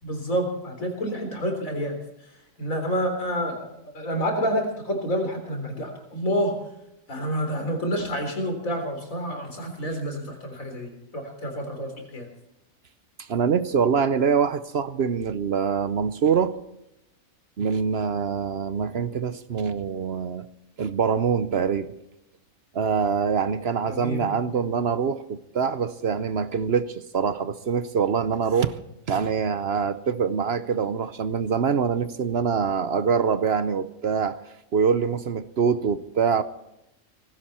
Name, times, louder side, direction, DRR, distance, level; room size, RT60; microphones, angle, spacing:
voice 1, 0.0-2.0 2.6-6.6 7.1-12.3 23.8-24.7, equal, 85° left, 4.2 m, -28 dB
voice 2, 13.2-16.6 17.6-20.5 20.8-21.9 22.7-28.8 29.1-34.4 34.7-36.4, right 6 dB, 55° right, 0.9 m, -24 dB
18.5 x 16.0 x 4.3 m
omnidirectional pair, 1.4 m